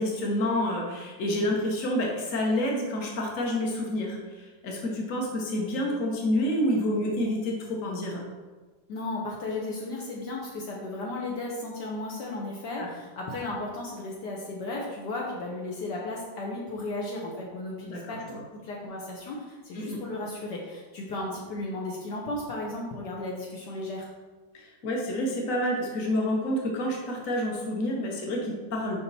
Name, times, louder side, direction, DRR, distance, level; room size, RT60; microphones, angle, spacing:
voice 1, 0.0-8.2 12.8-12.9 17.9-18.4 19.7-20.0 24.5-29.0, left 1 dB, 50° left, -1 dB, 1.5 m, -28 dB
voice 2, 8.9-18.2 18.5-24.1, left 2 dB, 70° left, -3 dB, 1.5 m, -35 dB
6.6 x 5.4 x 4.1 m, 1.3 s
omnidirectional pair, 2.0 m